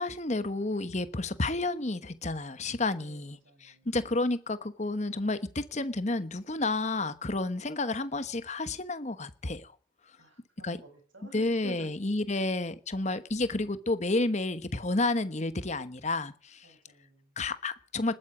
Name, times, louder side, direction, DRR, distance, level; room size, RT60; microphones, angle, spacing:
voice 1, 0.0-9.7 10.6-10.8 11.3-16.7 17.4-18.2, left 2 dB, 35° left, 1.1 m, -31 dB
voice 2, 3.0-3.9 10.2-11.9 12.3-12.5 16.6-17.3, equal, 75° right, 7.9 m, -49 dB
20.0 x 13.5 x 5.0 m
head